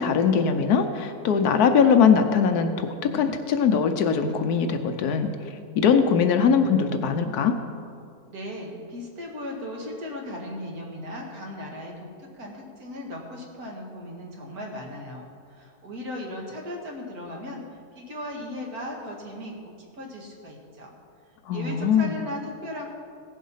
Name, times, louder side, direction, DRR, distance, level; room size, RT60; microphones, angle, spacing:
voice 1, 0.0-7.5 21.5-22.1, left 6 dB, 75° left, 7 dB, 1.2 m, -21 dB
voice 2, 8.3-17.6 17.9-20.9 21.5-22.9, left 1 dB, 65° right, -1 dB, 2.4 m, -37 dB
16.5 x 7.3 x 5.6 m, 2.3 s
omnidirectional pair, 1.7 m